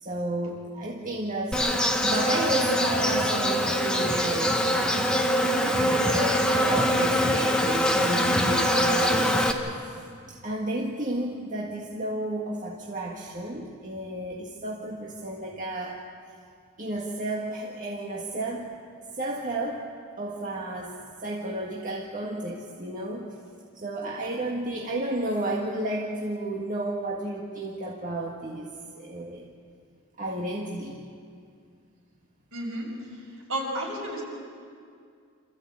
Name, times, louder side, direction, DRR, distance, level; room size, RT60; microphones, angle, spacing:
voice 1, 0.0-5.1 5.4-9.3 10.3-16.1 16.8-18.7 19.1-19.8 20.2-20.9 21.2-23.3 23.7-29.5 30.2-31.1, right 1 dB, 35° right, -3 dB, 1.8 m, -32 dB
Insect, 1.5-9.5, equal, 5° left, 1.3 m, -23 dB
voice 2, 32.5-32.9 33.5-34.2, right 1 dB, 65° right, -2 dB, 6.6 m, -31 dB
27.0 x 15.0 x 8.6 m, 2.3 s
head